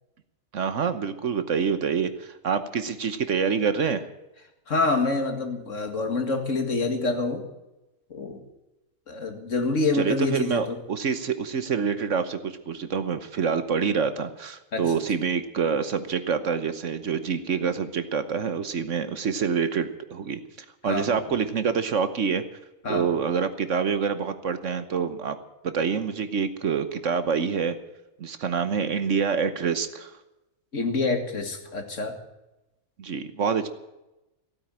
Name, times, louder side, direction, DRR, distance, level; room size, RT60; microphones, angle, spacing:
voice 1, 0.5-4.1 9.9-20.4 20.8-22.4 22.9-25.4 25.6-27.8 28.2-30.1 33.0-33.7, right 6 dB, 60° right, 11 dB, 1.3 m, -26 dB
voice 2, 4.7-7.4 8.1-8.4 9.1-10.8 14.7-14.9 20.8-21.2 22.8-23.1 30.7-32.2, left 3 dB, 60° left, 5 dB, 2.4 m, -26 dB
16.0 x 9.2 x 8.8 m, 0.97 s
omnidirectional pair, 1.5 m